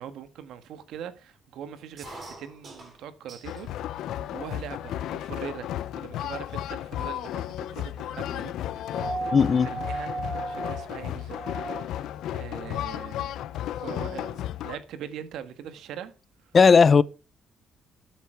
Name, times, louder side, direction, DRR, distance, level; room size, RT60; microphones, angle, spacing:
voice 1, 0.0-5.7 5.9-8.5 9.1-9.3 9.6-10.1 10.5-11.4 11.7-12.1 12.3-16.1, right 9 dB, 85° right, 1.6 m, -41 dB
sound 1, 2.0-3.7 4.1-4.8 5.4-5.5 5.8-6.2 6.8-6.9 7.1-9.4 9.7-10.0 11.3-11.6 12.7-12.8 13.0-13.1 13.4-14.3, right 2 dB, 50° right, 6.7 m, -48 dB
sound 2, 3.4-14.8, left 12 dB, 85° left, 0.7 m, -34 dB
sound 3, 8.9-12.1 13.5-13.6, right 3 dB, 25° right, 0.5 m, -35 dB
voice 2, 9.3-9.7 16.5-17.0, left 5 dB, 40° left, 0.7 m, -16 dB
13.0 x 8.4 x 4.6 m
cardioid pair, 90°, 0 cm